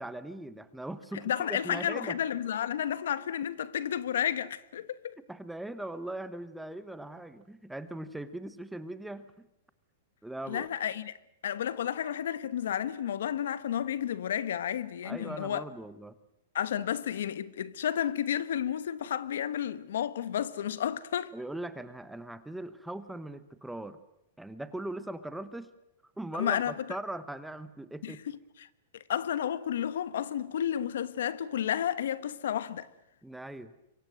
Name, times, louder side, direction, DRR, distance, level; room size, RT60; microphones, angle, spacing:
voice 1, 0.0-2.2 5.3-9.2 10.2-10.7 15.0-16.1 21.3-24.0 24.4-25.7 26.2-28.2 33.2-33.7, right 1 dB, 5° right, 0.9 m, -40 dB
voice 2, 1.1-5.2 10.5-11.1 11.4-15.6 16.5-21.3 26.3-26.9 28.0-28.7 28.9-32.9, left 9 dB, 75° left, 1.3 m, -32 dB
26.0 x 24.0 x 7.7 m
supercardioid pair, 175°, 0 cm